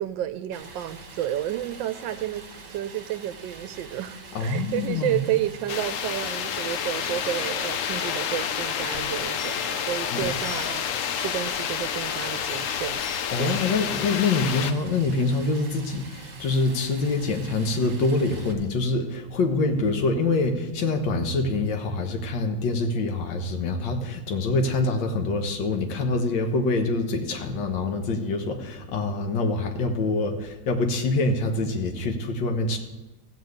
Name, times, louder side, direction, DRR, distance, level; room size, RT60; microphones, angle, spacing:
voice 1, 0.0-13.0 13.4-13.6, right 12 dB, 75° right, 11 dB, 1.2 m, -31 dB
Stream, 0.5-18.5, right 4 dB, 45° right, 1.6 m, -45 dB
voice 2, 4.3-5.2 10.1-10.3 13.3-32.8, left 3 dB, 70° left, 5 dB, 1.8 m, -25 dB
sound 1, 5.7-14.7, left 8 dB, 85° left, 0.7 m, -29 dB
15.0 x 5.3 x 8.0 m, 1.0 s
omnidirectional pair, 2.1 m